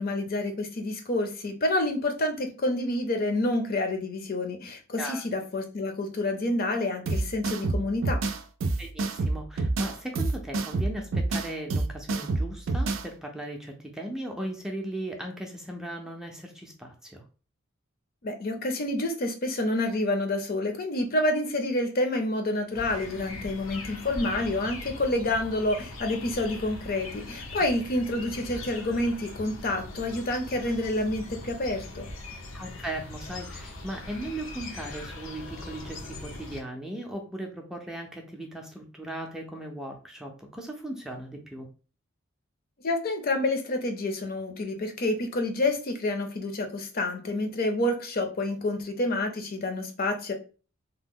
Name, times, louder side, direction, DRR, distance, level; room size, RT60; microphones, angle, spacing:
voice 1, 0.0-8.2 18.2-32.1 42.8-50.3, left 1 dB, 45° left, 6 dB, 0.6 m, -28 dB
sound 1, 7.1-13.1, right 3 dB, 70° right, 0.4 m, -28 dB
voice 2, 8.8-17.2 32.5-41.7, right 1 dB, 5° right, 1 dB, 0.4 m, -37 dB
sound 2, 22.7-36.6, left 2 dB, 90° left, 0.7 m, -41 dB
2.9 x 2.1 x 3.5 m, 0.36 s
head